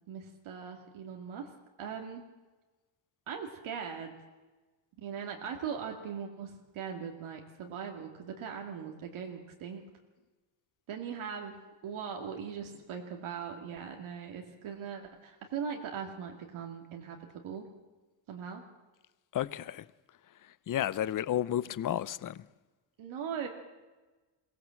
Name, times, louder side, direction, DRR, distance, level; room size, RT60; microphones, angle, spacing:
voice 1, 0.1-1.5 1.8-2.2 3.3-4.1 5.0-9.8 10.9-11.6 11.8-17.7 18.3-18.6 23.0-23.5, right 7 dB, 75° right, 2.3 m, -40 dB
voice 2, 19.3-19.9 20.4-22.5, left 11 dB, 40° left, 0.7 m, -32 dB
22.5 x 17.5 x 7.6 m
cardioid pair, 130°, 49 cm